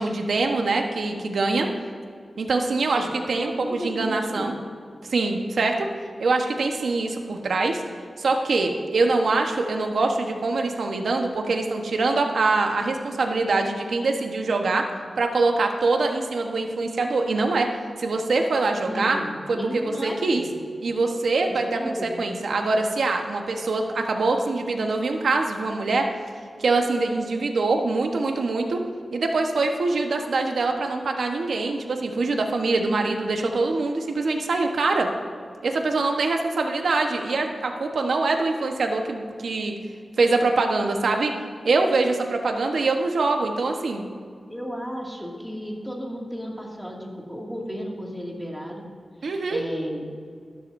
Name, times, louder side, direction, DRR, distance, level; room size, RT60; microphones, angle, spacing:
voice 1, 0.0-1.7 2.4-4.5 5.1-5.9 6.2-7.8 8.2-14.8 15.2-17.7 18.0-19.2 19.5-20.4 20.8-26.1 26.6-28.8 29.1-35.1 35.6-39.7 40.2-41.3 41.6-44.0 49.2-49.6, right 3 dB, 85° right, 3 dB, 1.1 m, -24 dB
voice 2, 3.4-4.5 18.8-20.6 21.5-22.3 44.5-48.9 49.2-50.1, equal, ahead, -2 dB, 2.2 m, -33 dB
13.5 x 12.5 x 2.7 m, 2.2 s
wide cardioid pair, 90°, 0 cm